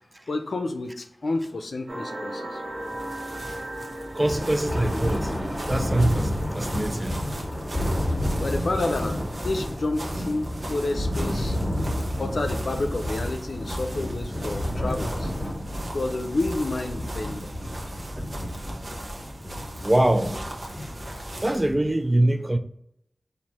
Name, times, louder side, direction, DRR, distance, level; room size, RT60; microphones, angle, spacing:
voice 1, 0.3-2.6 8.4-9.1 9.4-11.6 12.2-15.3 15.9-17.5, left 2 dB, 70° left, 0.5 m, -29 dB
sound 1, 1.9-6.6 7.1-7.2, right 1 dB, 75° right, 0.9 m, -37 dB
sound 2, 2.6-21.7, right 1 dB, 55° right, 1.1 m, -39 dB
voice 2, 4.1-5.3 5.7-7.2 18.2-18.3 19.4-19.5 19.8-20.4 21.4-22.6, right 1 dB, 25° right, 0.4 m, -23 dB
Thunder, 4.2-21.9, left 1 dB, 5° left, 1.6 m, -30 dB
4.2 x 2.7 x 4.2 m
cardioid pair, 40°, 0 cm